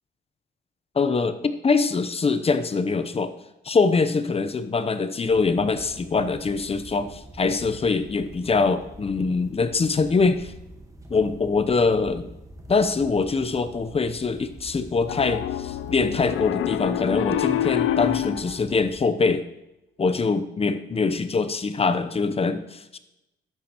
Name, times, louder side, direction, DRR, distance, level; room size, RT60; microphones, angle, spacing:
voice 1, 1.0-3.3 3.6-10.5 11.1-12.3 12.7-19.4 20.0-23.0, left 4 dB, 30° left, 10 dB, 0.8 m, -23 dB
sound 1, 5.3-19.0, right 1 dB, 15° right, 1.5 m, -45 dB
Piano, 15.1-18.5, left 12 dB, 85° left, 0.6 m, -26 dB
12.0 x 9.1 x 3.0 m, 0.89 s
cardioid pair, 90°, 20 cm